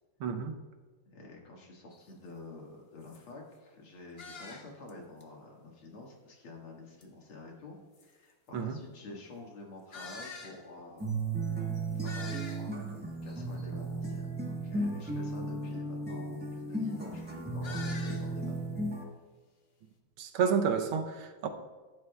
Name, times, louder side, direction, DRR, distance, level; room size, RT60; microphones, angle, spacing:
voice 1, 0.2-0.6 8.5-8.8 20.2-21.5, right 6 dB, 80° right, 6 dB, 1.6 m, -30 dB
voice 2, 1.1-7.8 8.0-11.2 11.5-11.7 11.9-18.7, left 2 dB, 75° left, -1 dB, 2.6 m, -49 dB
sound 1, 1.9-2.0 2.6-2.7 3.0-3.2 4.2-4.9 5.2-5.3 7.0-7.1 7.9-8.0 9.9-10.6 11.1-11.2 11.4-11.5 11.7-12.8 13.3-13.7 17.6-18.3, left 4 dB, 45° left, 0.7 m, -46 dB
sound 2, 11.0-19.0, right 2 dB, 10° right, 0.6 m, -35 dB
15.0 x 9.2 x 2.3 m, 1.4 s
omnidirectional pair, 2.4 m